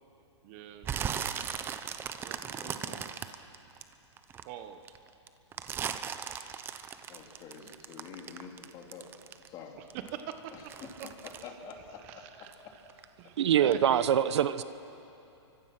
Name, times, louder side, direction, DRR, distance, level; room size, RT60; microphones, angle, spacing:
voice 1, 0.4-0.9 2.2-3.0 4.4-4.9 9.8-10.5 11.0-11.6 11.9-12.8 13.2-14.2, right 10 dB, 35° right, 8 dB, 1.1 m, -43 dB
sound 1, 0.8-4.4 4.8-9.6 9.9-12.6 12.9-13.3 13.7-13.8, right 8 dB, 15° right, 0.8 m, -38 dB
voice 2, 2.6-3.0 7.1-9.1 9.5-9.8 10.5-10.9 11.2-12.2, left 6 dB, 25° left, 2 dB, 3.0 m, -47 dB
voice 3, 13.4-14.6, right 9 dB, 65° right, 13 dB, 1.0 m, -24 dB
29.5 x 24.5 x 6.1 m, 2.8 s
hypercardioid pair, 155°, 15 cm